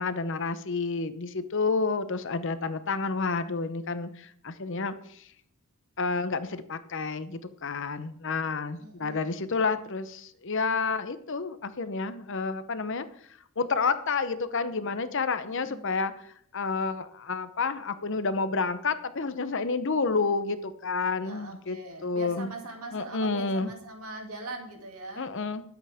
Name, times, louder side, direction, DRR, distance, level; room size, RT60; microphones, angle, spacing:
voice 1, 0.0-5.2 6.0-13.1 13.6-16.1 16.5-21.8 22.0-22.5 22.9-23.7 25.2-25.6, left 4 dB, 60° left, 12 dB, 0.8 m, -30 dB
voice 2, 8.8-9.6 15.4-15.8 21.2-25.3, right 2 dB, 85° right, 2 dB, 2.7 m, -42 dB
20.0 x 8.2 x 3.6 m, 0.65 s
head